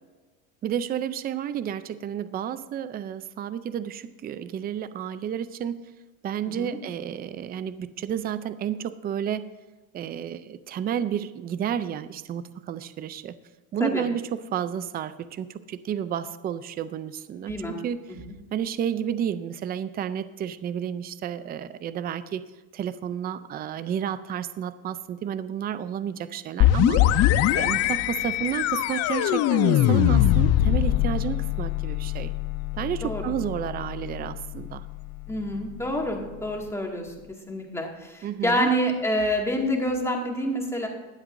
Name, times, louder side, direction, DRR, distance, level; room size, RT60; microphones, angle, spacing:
voice 1, 0.6-5.9 6.2-9.5 9.9-13.3 13.7-18.0 18.5-22.5 22.7-27.0 27.5-32.3 32.7-34.9 38.2-38.7, right 9 dB, 25° right, 13 dB, 0.4 m, -31 dB
voice 2, 6.4-6.8 13.8-14.0 17.5-17.7 18.1-18.2 33.0-33.3 35.3-37.1 37.5-40.9, equal, 5° left, 0 dB, 2.1 m, -27 dB
sound 1, 26.6-36.2, left 13 dB, 40° left, 0.5 m, -23 dB
22.0 x 7.9 x 2.6 m, 1.2 s
supercardioid pair, 135°, 42 cm